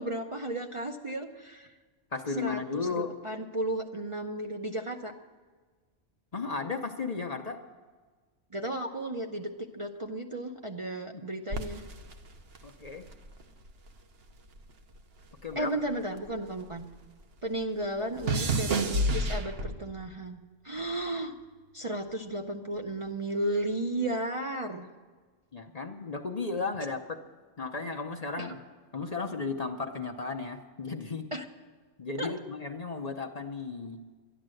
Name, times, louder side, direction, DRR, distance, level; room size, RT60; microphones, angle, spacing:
voice 1, 0.0-1.7 2.4-5.1 8.5-11.8 15.5-16.9 17.4-21.4 21.7-24.9 28.4-28.6 31.3-31.5 32.2-32.3, right 1 dB, 35° right, 2 dB, 0.6 m, -34 dB
voice 2, 2.1-3.1 6.3-7.6 11.1-11.2 12.6-13.0 15.4-15.7 25.5-27.2 27.6-28.5 28.9-31.3 32.0-34.0, left 4 dB, 40° left, 4 dB, 0.8 m, -34 dB
sound 1, 11.5-14.0 14.3-16.9 17.2-20.0 20.8-21.1, right 1 dB, 60° right, 1.2 m, -32 dB
12.0 x 11.0 x 7.7 m, 1.4 s
omnidirectional pair, 1.2 m